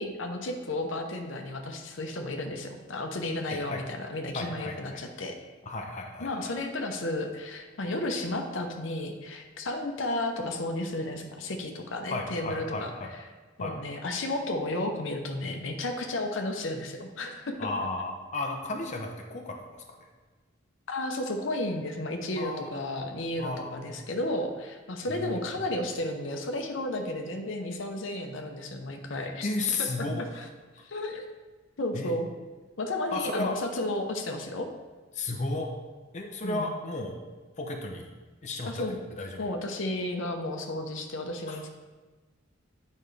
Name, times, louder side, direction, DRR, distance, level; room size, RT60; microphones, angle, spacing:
voice 1, 0.0-5.4 6.2-13.2 13.6-17.7 20.9-29.5 29.8-30.1 30.3-30.5 30.8-31.2 31.8-32.3 32.8-34.7 36.4-36.7 38.7-39.0 39.4-41.7, left 1 dB, 70° left, 4 dB, 0.8 m, -33 dB
voice 2, 3.5-3.8 4.3-5.0 5.6-6.5 12.1-13.1 13.6-13.7 17.6-19.8 22.4-22.7 23.4-24.0 25.1-25.5 29.4-30.3 31.9-32.1 33.1-33.5 35.1-35.7 36.1-37.2 37.6-38.1 38.4-38.8 39.2-39.4 41.5-41.6, left 2 dB, 40° left, 2 dB, 0.6 m, -33 dB
8.9 x 5.3 x 3.3 m, 1.3 s
head